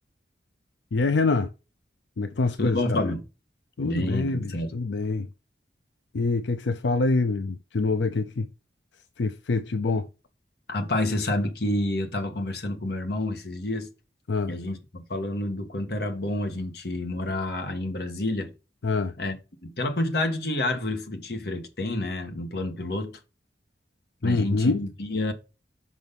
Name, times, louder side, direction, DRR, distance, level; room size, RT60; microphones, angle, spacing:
voice 1, 0.9-1.5 2.2-3.0 3.8-5.3 6.1-8.5 9.2-10.1 14.3-14.5 18.8-19.1 24.2-24.8, left 3 dB, 85° left, 0.5 m, -25 dB
voice 2, 2.6-3.2 3.8-4.7 10.7-13.9 14.5-18.5 19.2-23.2 24.2-25.3, left 1 dB, 60° left, 1.5 m, -29 dB
6.3 x 5.3 x 5.3 m
head